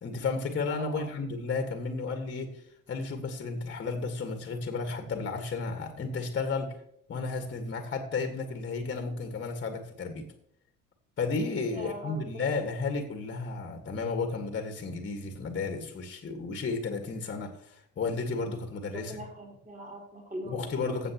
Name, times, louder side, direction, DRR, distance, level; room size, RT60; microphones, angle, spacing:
voice 1, 0.0-2.6 2.9-6.8 7.1-10.2 11.2-19.2 20.4-21.1, left 4 dB, 30° left, 5 dB, 1.8 m, -33 dB
voice 2, 11.7-12.5 18.9-20.7, equal, 20° right, -1 dB, 4.0 m, -41 dB
15.5 x 7.3 x 3.0 m, 0.70 s
hypercardioid pair, 65°, 37 cm